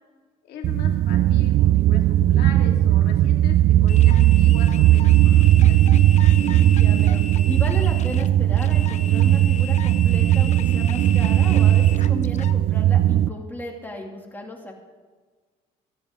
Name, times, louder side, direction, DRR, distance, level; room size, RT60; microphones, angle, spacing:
voice 1, 0.4-3.6 3.8-5.8, left 5 dB, 70° left, 1 dB, 2.4 m, -39 dB
sound 1, 0.6-13.3, right 13 dB, 60° right, 0.5 m, -17 dB
sound 2, 3.9-12.6, left 6 dB, 45° left, 0.8 m, -37 dB
voice 2, 6.4-14.7, left 1 dB, 10° left, 0 dB, 2.6 m, -35 dB
26.5 x 9.0 x 3.8 m, 1.4 s
cardioid pair, 110°, 17 cm